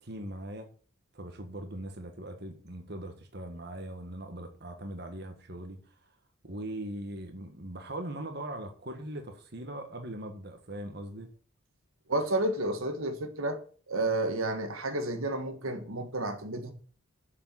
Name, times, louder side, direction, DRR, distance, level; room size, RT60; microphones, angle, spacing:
voice 1, 0.0-0.7 1.1-5.9 6.4-11.3, right 1 dB, 50° right, 1.6 m, -40 dB
voice 2, 12.1-13.6 13.9-16.7, right 2 dB, 85° right, 1.6 m, -31 dB
7.4 x 6.7 x 7.8 m
head